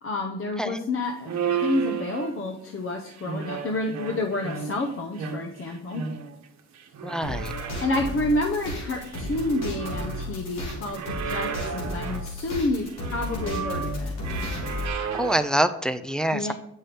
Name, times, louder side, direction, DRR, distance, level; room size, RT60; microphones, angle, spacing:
voice 1, 0.0-1.3 1.6-6.0 7.8-14.1 16.3-16.5, left 2 dB, 45° left, 1 dB, 0.8 m, -29 dB
sound 1, 1.2-2.6 3.1-4.9 5.2-6.4 6.7-8.2 8.7-10.3 10.6-12.3 12.8-15.4, right 6 dB, 65° right, 1.0 m, -33 dB
voice 2, 7.0-7.5 15.2-16.5, right 1 dB, ahead, 9 dB, 0.4 m, -25 dB
sound 2, 7.2-14.9, left 1 dB, 90° left, 2.0 m, -33 dB
7.5 x 5.5 x 3.4 m, 0.83 s
cardioid pair, 90°, 30 cm